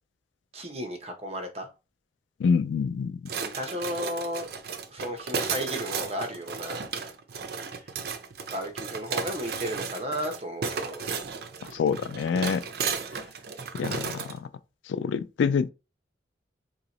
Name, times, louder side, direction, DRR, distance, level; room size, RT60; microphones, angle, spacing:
voice 1, 0.5-1.7 3.4-4.5 4.9-6.8 7.6-7.9 8.5-11.1, equal, 35° right, 0.9 m, -34 dB
voice 2, 2.4-3.1 11.7-12.6 13.7-14.5 14.9-15.7, left 6 dB, 85° left, 0.3 m, -26 dB
sound 1, 3.3-14.4, right 5 dB, 60° right, 0.5 m, -34 dB
3.0 x 2.8 x 4.0 m
head